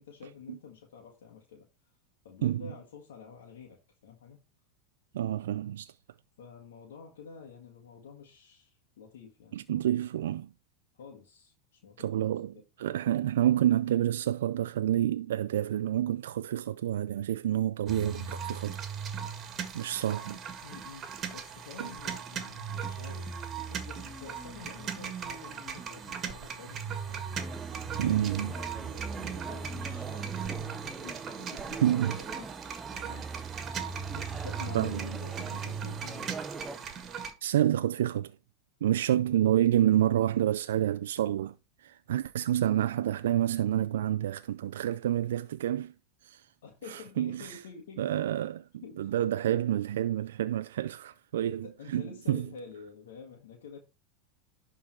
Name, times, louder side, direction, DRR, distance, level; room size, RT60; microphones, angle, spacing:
voice 1, 0.0-1.7 2.2-4.4 6.4-9.8 10.9-12.6 20.6-23.3 23.7-27.2 28.6-30.6 30.9-32.5 32.9-33.3 34.1-36.3 46.6-48.2 48.8-49.1 51.4-53.8, left 6 dB, 80° left, 1.7 m, -49 dB
voice 2, 5.1-5.9 9.5-10.5 12.0-18.8 19.7-20.4 21.8-21.9 28.0-28.6 31.8-32.2 34.7-35.1 37.4-38.3 38.8-41.5 41.8-45.9 46.2-46.4 46.9-47.6 48.0-52.5, right 11 dB, 80° right, 0.4 m, -28 dB
sound 1, 17.9-37.3, right 6 dB, 35° right, 1.7 m, -38 dB
sound 2, 27.4-36.8, right 4 dB, 15° right, 0.7 m, -43 dB
11.5 x 3.8 x 4.5 m
hypercardioid pair, 105°, 0 cm